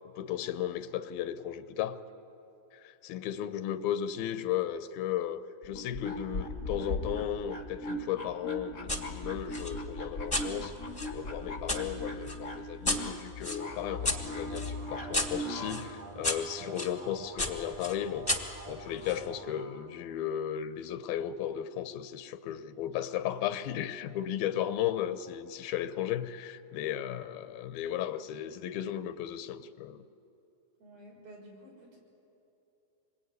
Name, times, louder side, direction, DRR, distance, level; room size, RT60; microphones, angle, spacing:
voice 1, 0.2-2.0 2.7-10.7 11.1-18.4 18.7-30.0, left 10 dB, 85° left, 2.7 m, -35 dB
sound 1, 5.6-15.9, left 1 dB, 40° left, 1.1 m, -38 dB
sound 2, 8.9-9.0 9.5-11.8 12.3-16.9 17.4-19.3, left 2 dB, 15° left, 1.0 m, -34 dB
sound 3, 13.6-19.6, right 3 dB, 65° right, 4.3 m, -48 dB
voice 2, 30.8-32.0, right 1 dB, 85° right, 8.2 m, -52 dB
26.0 x 22.0 x 9.6 m
omnidirectional pair, 4.1 m